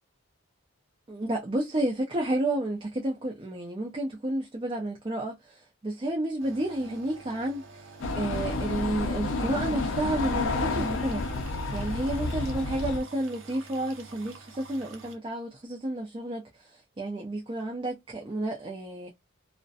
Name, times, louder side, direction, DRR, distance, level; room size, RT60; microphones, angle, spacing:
voice 1, 1.1-7.9 8.2-11.2 11.7-19.1, right 1 dB, 25° right, 0.4 m, -31 dB
sound 1, 6.4-15.2, right 4 dB, 60° right, 0.6 m, -49 dB
sound 2, 8.0-13.0, left 3 dB, 60° left, 0.4 m, -30 dB
2.4 x 2.1 x 2.6 m
head